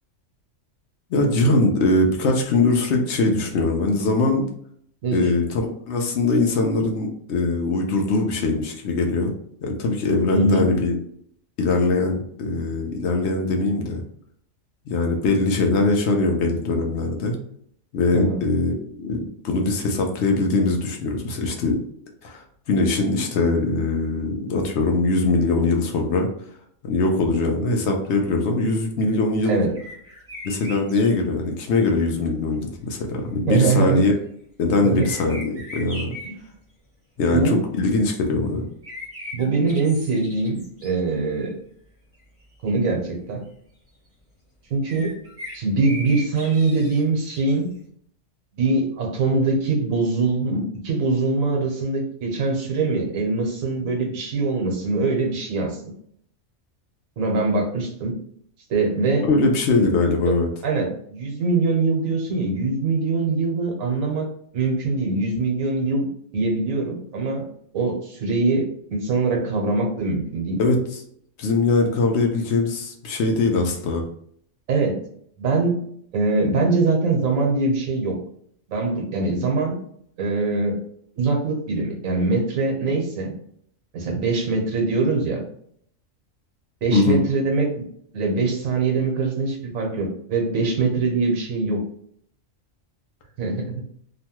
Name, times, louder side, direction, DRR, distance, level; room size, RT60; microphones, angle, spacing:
voice 1, 1.1-4.5 5.1-9.3 9.6-11.0 11.6-14.0 14.9-17.4 17.9-21.8 22.2-26.3 26.8-29.6 30.4-34.1 34.6-36.1 37.2-38.6 59.3-60.5 70.6-71.0 71.4-74.1 86.9-87.2, left 3 dB, 65° left, 2 dB, 0.8 m, -21 dB
voice 2, 10.3-10.6 18.1-18.4 29.5-29.7 33.5-34.0 34.8-35.0 36.2-36.5 37.2-37.6 39.3-41.5 42.6-43.4 44.7-45.1 45.5-47.7 48.5-55.8 57.2-58.1 58.7-59.3 59.6-59.9 60.3-60.4 60.6-64.3 64.5-66.1 66.3-67.4 67.7-70.6 74.7-75.0 75.4-75.7 76.1-78.2 78.7-79.8 80.2-80.8 81.2-83.3 83.9-85.4 86.8-87.7 88.1-91.8 93.4-93.7, right 3 dB, 85° right, 1 dB, 1.3 m, -23 dB
sound 1, 29.7-31.1 34.9-36.3 38.8-40.9 41.4-41.5 42.1-42.2 42.4-42.5 44.8-47.5, left 1 dB, 15° right, 0.7 m, -38 dB
3.0 x 2.2 x 2.8 m, 0.65 s
omnidirectional pair, 1.4 m